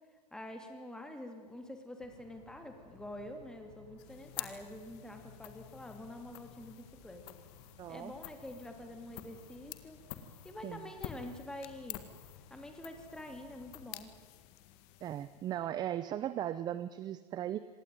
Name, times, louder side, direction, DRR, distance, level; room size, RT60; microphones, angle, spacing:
voice 1, 0.3-7.4 7.9-10.0 10.4-12.0 12.5-14.1, left 1 dB, 5° left, 5 dB, 2.9 m, -47 dB
sound 1, 2.0-13.9, left 6 dB, 60° left, 7.1 m, -59 dB
sound 2, 4.0-15.7, left 14 dB, 45° left, 1.9 m, -49 dB
voice 2, 7.8-8.1 10.6-10.8 15.0-17.7, right 11 dB, 20° right, 15 dB, 0.7 m, -37 dB
26.0 x 19.0 x 9.3 m, 1.5 s
supercardioid pair, 150°, 20 cm